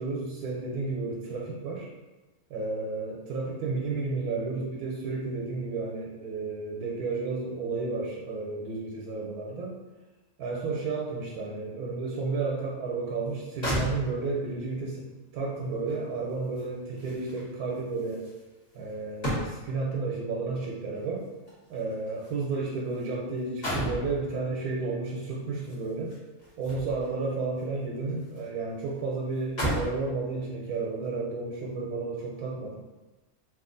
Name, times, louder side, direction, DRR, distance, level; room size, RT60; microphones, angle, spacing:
voice 1, 0.0-1.9 2.5-9.8 10.4-15.1 15.3-18.3 18.7-21.3 21.7-26.2 26.6-32.8, right 3 dB, 90° right, -3 dB, 1.1 m, -32 dB
sound 1, 13.3-13.4 13.6-14.5 15.9-19.9 20.9-23.1 23.4-24.1 25.6-27.2 27.6-28.5 28.8-28.9 29.3-30.0 30.7-30.9, right 1 dB, 30° left, 1.2 m, -35 dB
3.0 x 2.3 x 3.8 m, 1.1 s
omnidirectional pair, 1.6 m